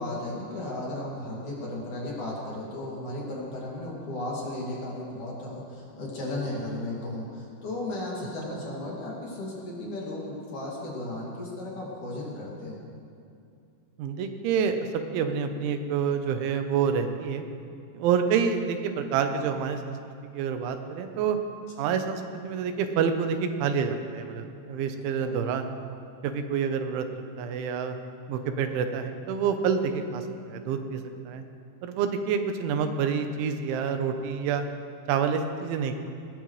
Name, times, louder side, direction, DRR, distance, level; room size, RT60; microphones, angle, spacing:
voice 1, 0.0-12.8 21.8-21.9 25.2-25.4, left 1 dB, 50° left, -5 dB, 3.5 m, -35 dB
voice 2, 14.0-14.8 15.1-17.5 17.9-20.0 20.2-21.4 21.8-25.7 26.2-27.1 27.4-28.0 28.3-31.4 31.8-34.7 35.1-35.9, right 6 dB, 85° right, 7 dB, 3.4 m, -28 dB
20.0 x 19.0 x 3.2 m, 2.5 s
omnidirectional pair, 5.3 m